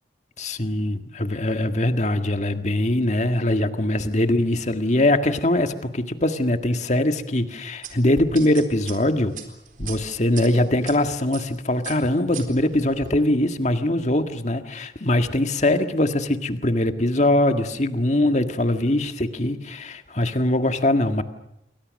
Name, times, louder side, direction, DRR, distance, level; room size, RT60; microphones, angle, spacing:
voice 1, 0.4-9.4 9.8-21.2, left 1 dB, 40° left, 7 dB, 1.8 m, -22 dB
sound 1, 7.8-10.9 11.3-11.6 11.8-13.1, right 5 dB, 45° right, 4.1 m, -37 dB
28.5 x 23.5 x 6.5 m, 0.85 s
head